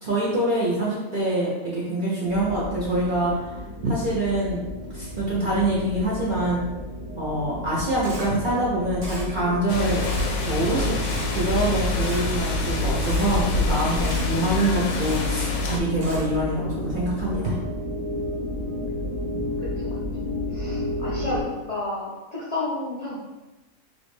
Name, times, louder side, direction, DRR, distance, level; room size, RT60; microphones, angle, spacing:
voice 1, 0.0-3.4 3.8-4.6 4.9-6.6 7.2-10.0 10.4-11.0 11.3-17.6, right 1 dB, 50° right, -6 dB, 0.6 m, -25 dB
sound 1, 2.3-21.4, left 1 dB, 20° right, 0.9 m, -32 dB
Camera, 8.0-8.3 9.0-9.2 10.0-10.3 11.0-11.2 12.0-12.2 13.0-13.2 14.0-14.2 15.0-15.2 16.0-16.2, right 1 dB, 75° right, 1.6 m, -38 dB
sound 2, 9.7-15.8, left 3 dB, 80° left, 1.0 m, -26 dB
voice 2, 18.7-19.3 19.6-20.0 20.5-23.2, left 2 dB, 50° left, -8 dB, 0.4 m, -32 dB
3.4 x 2.5 x 3.1 m, 1.1 s
omnidirectional pair, 1.5 m